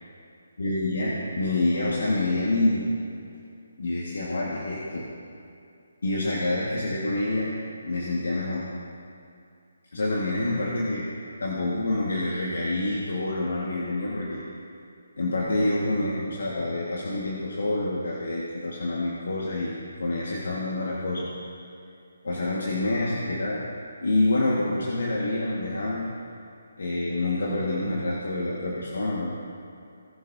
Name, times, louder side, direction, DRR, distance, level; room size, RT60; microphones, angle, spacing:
voice 1, 0.6-2.9 3.8-5.1 6.0-7.5 7.8-8.7 9.9-11.1 11.4-14.4 15.2-21.3 22.2-23.7 24.0-26.1 26.8-29.3, left 2 dB, 75° left, -5 dB, 1.8 m, -27 dB
19.0 x 7.1 x 2.8 m, 2.5 s
hypercardioid pair, 165°, 0 cm